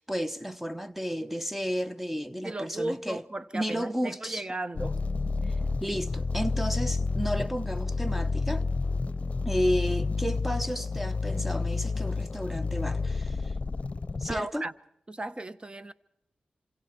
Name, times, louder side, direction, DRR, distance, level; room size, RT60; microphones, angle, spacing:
voice 1, 0.0-3.2 3.5-4.4 5.4-5.5 5.8-8.7 9.4-13.5 14.2-14.6, equal, 5° right, 1.0 m, -32 dB
voice 2, 2.4-5.0 14.3-14.7 15.1-15.9, right 2 dB, 30° right, 1.4 m, -35 dB
sound 1, 4.8-14.4, left 3 dB, 45° left, 0.8 m, -30 dB
28.0 x 26.0 x 4.5 m
cardioid pair, 45°, 3 cm